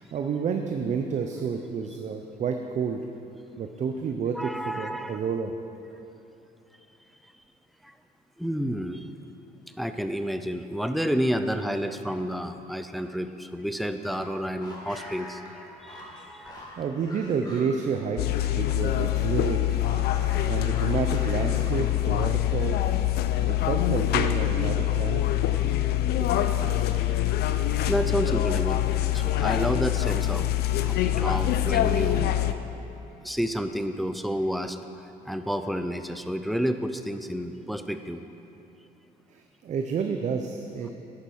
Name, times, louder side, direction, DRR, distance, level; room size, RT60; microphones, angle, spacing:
voice 1, 0.0-3.0 3.6-5.5 16.6-18.2 18.5-19.8 20.2-22.9 23.5-25.2 39.3-40.9, right 6 dB, 45° right, 5 dB, 0.7 m, -30 dB
voice 2, 4.3-5.2 7.8-7.9 8.4-9.1 9.8-16.6 25.6-25.8 26.2-26.3 26.6-27.3 27.9-28.8 29.1-32.4 33.2-34.8 35.2-38.2, equal, ahead, 8 dB, 0.5 m, -30 dB
sound 1, 13.9-18.6 18.9-22.2, left 1 dB, 25° left, 2.5 m, -46 dB
sound 2, 18.2-32.5, left 13 dB, 70° left, 0.5 m, -25 dB
10.5 x 8.5 x 6.3 m, 3.0 s
cardioid pair, 110°, 17 cm